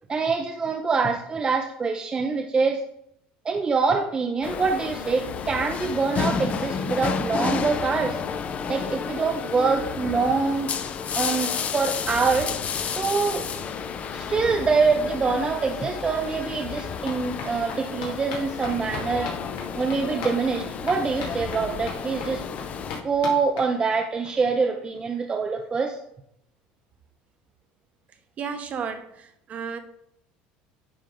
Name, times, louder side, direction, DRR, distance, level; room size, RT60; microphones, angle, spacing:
voice 1, 0.1-2.8 3.4-8.2 8.7-10.7 11.1-12.5 13.0-13.5 14.1-19.3 19.8-22.4 23.0-26.0, right 4 dB, 25° right, 4 dB, 0.6 m, -25 dB
sound 1, 4.4-23.0, left 6 dB, 40° left, 0.6 m, -31 dB
sound 2, 15.8-24.3 24.6-24.7 25.0-25.1 25.3-25.4, left 4 dB, 90° left, 2.2 m, -40 dB
voice 2, 28.4-29.8, right 6 dB, 40° right, 8 dB, 1.0 m, -33 dB
10.0 x 3.6 x 3.7 m, 0.76 s
supercardioid pair, 110°, 4 cm